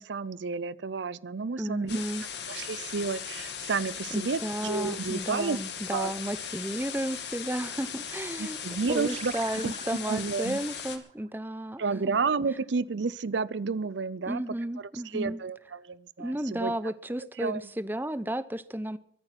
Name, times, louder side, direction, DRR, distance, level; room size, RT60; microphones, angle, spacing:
voice 1, 0.0-2.0 2.5-5.6 5.9-6.1 8.4-9.3 9.6-9.7 10.1-10.6 11.8-14.4 14.8-16.7 17.4-17.6, right 4 dB, 75° right, 20 dB, 0.6 m, -31 dB
voice 2, 1.6-2.2 4.1-8.6 8.9-11.8 14.3-15.4 16.2-19.0, right 1 dB, 10° right, 14 dB, 0.7 m, -33 dB
sound 1, 1.9-11.0, left 8 dB, 65° left, 2.3 m, -38 dB
sound 2, 8.2-12.9, right 6 dB, 35° right, 0.9 m, -48 dB
23.0 x 8.9 x 5.9 m, 0.65 s
head